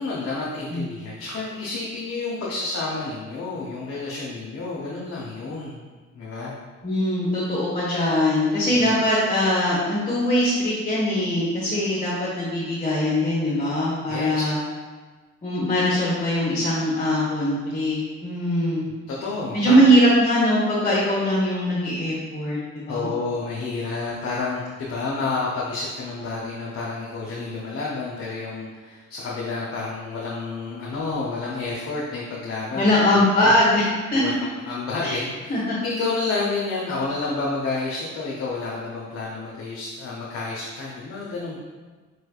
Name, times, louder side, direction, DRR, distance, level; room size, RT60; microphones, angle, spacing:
voice 1, 0.0-5.8 6.1-6.5 8.8-8.9 14.1-14.4 19.1-19.8 22.9-33.0 33.4-33.5 34.1-34.3 34.7-41.6, left 3 dB, 50° left, -5 dB, 0.7 m, -30 dB
voice 2, 6.8-14.6 15.4-18.8 19.5-23.1 32.7-33.8 34.1-34.4 35.0-35.1 35.5-35.8, equal, 25° left, -9 dB, 1.2 m, -21 dB
4.6 x 3.2 x 2.3 m, 1.4 s
cardioid pair, 90°, 30 cm